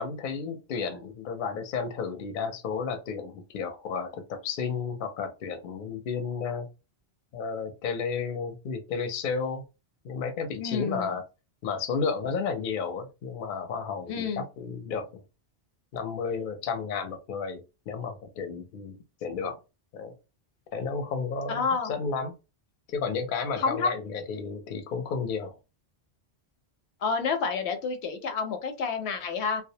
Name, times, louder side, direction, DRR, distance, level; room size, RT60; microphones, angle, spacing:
voice 1, 0.0-6.7 7.3-9.6 10.0-11.2 11.6-15.2 15.9-19.6 19.9-20.1 20.7-22.3 22.9-25.6, left 5 dB, 60° left, 0.7 m, -32 dB
voice 2, 10.6-11.2 14.1-14.4 21.5-21.9 23.6-23.9 27.0-29.6, left 5 dB, 85° left, 0.8 m, -29 dB
2.2 x 2.0 x 2.7 m
omnidirectional pair, 1.1 m